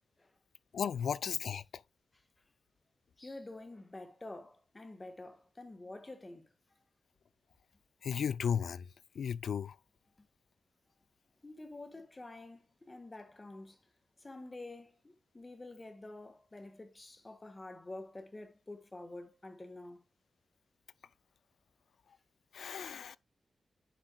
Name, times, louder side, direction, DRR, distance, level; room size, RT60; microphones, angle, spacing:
voice 1, 0.7-1.6 8.0-8.8 9.2-9.7 22.5-23.2, left 7 dB, 85° left, 0.3 m, -34 dB
voice 2, 3.2-6.5 11.4-13.8 14.2-20.0, left 2 dB, 25° left, 1.5 m, -48 dB
9.8 x 6.4 x 2.3 m
wide cardioid pair, 110°, 0 cm